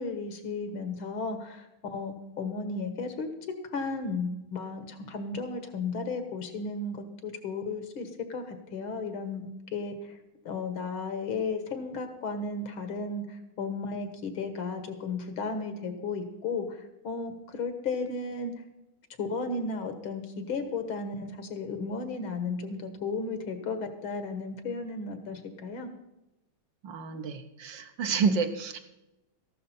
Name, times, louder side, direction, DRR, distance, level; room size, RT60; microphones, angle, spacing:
voice 1, 0.0-3.3 3.7-10.2 10.5-18.5 19.2-25.9, left 4 dB, 80° left, 7 dB, 2.3 m, -34 dB
voice 2, 26.8-28.8, right 5 dB, 70° right, 7 dB, 1.6 m, -29 dB
14.0 x 11.5 x 4.3 m, 0.95 s
omnidirectional pair, 2.2 m